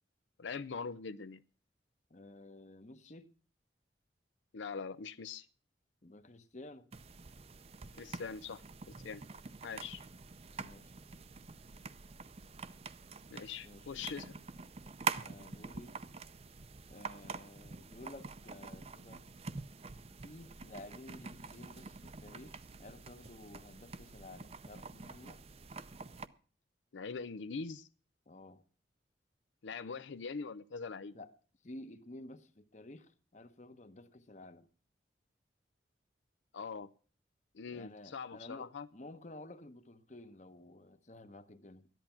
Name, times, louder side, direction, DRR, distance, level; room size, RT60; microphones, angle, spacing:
voice 1, 0.4-1.4 4.5-5.5 7.9-9.2 9.6-10.0 13.3-14.3 26.9-27.9 29.6-31.1 36.5-36.9 37.5-38.9, left 5 dB, 85° left, 0.5 m, -42 dB
voice 2, 2.1-3.3 6.0-6.9 10.6-10.9 13.6-14.1 15.2-16.0 16.9-19.3 20.2-25.4 28.3-28.6 31.1-31.3 31.6-34.7 37.7-41.9, left 1 dB, 40° left, 1.0 m, -52 dB
sound 1, 6.9-26.3, right 5 dB, 35° right, 0.6 m, -46 dB
13.5 x 11.0 x 5.8 m
head